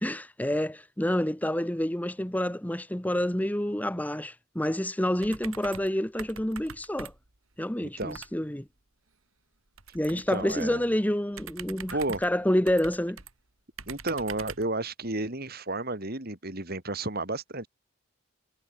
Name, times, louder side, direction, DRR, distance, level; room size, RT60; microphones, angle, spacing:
voice 1, 0.0-7.1 7.6-8.7 9.9-13.2, left 1 dB, 5° left, 1.0 m, -28 dB
sound 1, 5.2-5.9 6.2-7.4 8.0-8.3 9.8-10.7 11.3-13.3 13.8-14.7, right 6 dB, 75° right, 3.1 m, -44 dB
voice 2, 7.8-8.2 10.1-10.9 11.9-12.2 13.9-17.7, right 2 dB, 45° right, 3.5 m, -32 dB
head